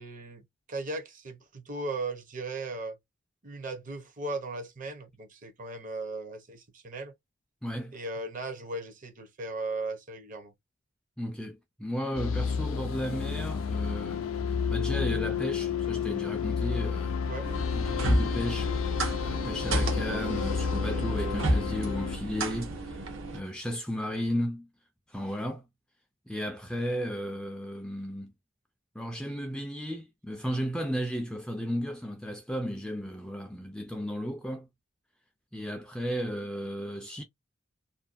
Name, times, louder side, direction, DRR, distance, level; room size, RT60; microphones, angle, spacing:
voice 1, 0.0-3.0 3.4-7.1 7.9-10.5 17.3-17.5, right 2 dB, 40° right, 0.6 m, -37 dB
voice 2, 7.6-8.0 11.2-14.2 14.7-17.2 17.7-18.7 19.2-24.7 25.1-25.6 26.3-28.3 29.0-34.7 35.5-37.2, equal, 5° left, 0.3 m, -34 dB
sound 1, 12.1-22.2, left 6 dB, 80° left, 0.4 m, -31 dB
sound 2, 17.4-23.4, right 1 dB, 75° right, 0.8 m, -31 dB
2.6 x 2.1 x 2.4 m
head